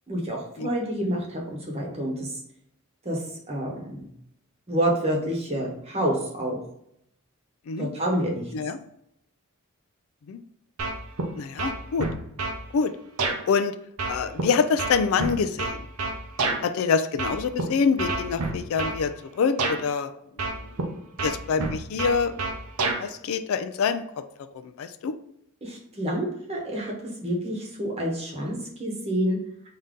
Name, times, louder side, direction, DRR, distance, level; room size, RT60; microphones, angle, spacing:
voice 1, 0.1-2.4 3.0-4.1 4.7-6.6 7.8-8.4 25.6-26.9 27.2-29.4, right 1 dB, 30° right, -1 dB, 1.0 m, -28 dB
sound 1, 10.8-11.3 11.6-12.6 13.2-13.4 14.0-16.6 17.2-17.6 18.0-19.0 19.6-19.8 20.4-20.9 21.2-23.0, right 3 dB, 80° right, 0.7 m, -28 dB
voice 2, 11.4-12.1 12.7-12.9 13.5-13.7 14.1-15.9 16.6-20.1 20.5-20.7 21.2-22.3 23.0-24.0 24.5-25.1, left 5 dB, 70° left, 9 dB, 0.3 m, -25 dB
3.7 x 2.7 x 3.6 m, 0.74 s
head